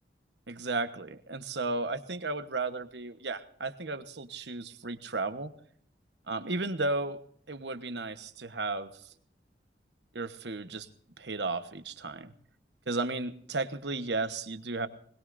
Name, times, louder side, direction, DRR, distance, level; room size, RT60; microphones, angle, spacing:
voice 1, 0.5-5.5 6.3-7.2 7.5-8.9 10.1-10.9 11.2-12.3 12.9-14.9, right 3 dB, 80° right, 10 dB, 1.2 m, -34 dB
22.0 x 21.0 x 2.6 m, 0.62 s
head